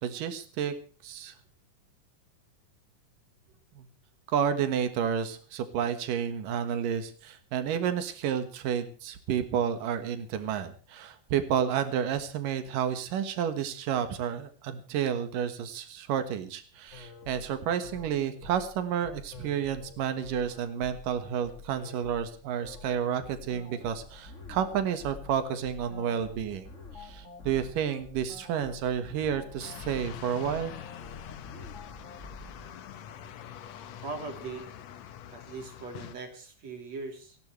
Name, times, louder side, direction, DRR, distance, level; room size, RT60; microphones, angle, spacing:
voice 1, 0.0-0.7 1.0-1.3 3.8-3.9 4.3-26.7 27.0-30.7, right 8 dB, 85° right, 9 dB, 3.1 m, -30 dB
sound 1, 16.9-32.7, left 3 dB, 25° left, 1.9 m, -47 dB
sound 2, 29.6-36.2, left 10 dB, 65° left, 2.1 m, -44 dB
voice 2, 34.0-34.7 35.3-37.4, right 3 dB, 55° right, 4 dB, 4.3 m, -40 dB
29.5 x 11.5 x 3.2 m, 0.40 s
omnidirectional pair, 3.8 m